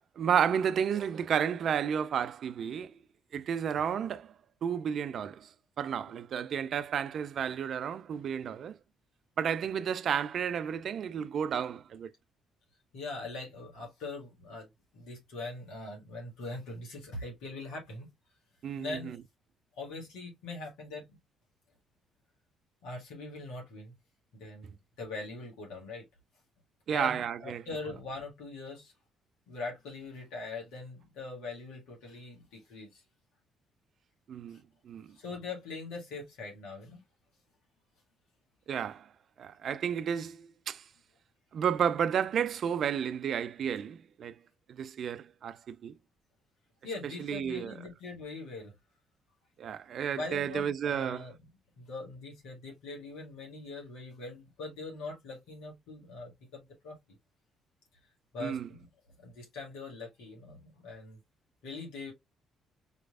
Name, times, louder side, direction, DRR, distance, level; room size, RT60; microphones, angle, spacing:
voice 1, 0.2-2.9 3.3-4.3 4.6-5.5 5.8-8.7 9.4-12.1 18.6-19.2 26.9-27.6 34.3-34.6 34.9-35.1 38.7-39.0 39.4-40.8 41.5-44.3 44.7-45.9 47.3-47.7 49.6-51.2 58.4-58.7, right 8 dB, 60° right, 0.4 m, -32 dB
voice 2, 12.9-14.7 14.9-18.1 18.8-19.2 19.7-21.1 22.8-23.9 24.3-26.0 26.9-28.9 29.5-33.0 34.5-34.6 35.1-37.0 46.8-48.7 50.1-51.5 51.8-57.0 58.3-58.9 59.2-61.2 61.6-62.1, left 3 dB, 75° left, 1.8 m, -42 dB
4.9 x 3.2 x 2.4 m
hypercardioid pair, 50°, 0 cm